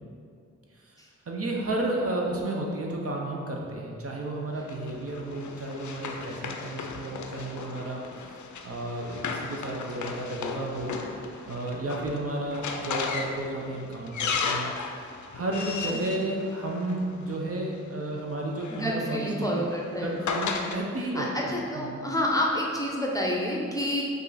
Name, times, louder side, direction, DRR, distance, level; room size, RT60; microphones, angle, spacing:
voice 1, 1.3-11.0 11.5-14.7 15.3-19.6 20.0-21.3 21.8-22.0, right 1 dB, 50° right, -1 dB, 0.7 m, -32 dB
Run, 4.7-17.3 18.3-20.8, left 5 dB, 70° left, 0.5 m, -35 dB
voice 2, 18.7-20.2 21.1-24.0, equal, 10° left, -3 dB, 0.6 m, -29 dB
5.2 x 2.5 x 4.0 m, 2.3 s
cardioid pair, 70°, 30 cm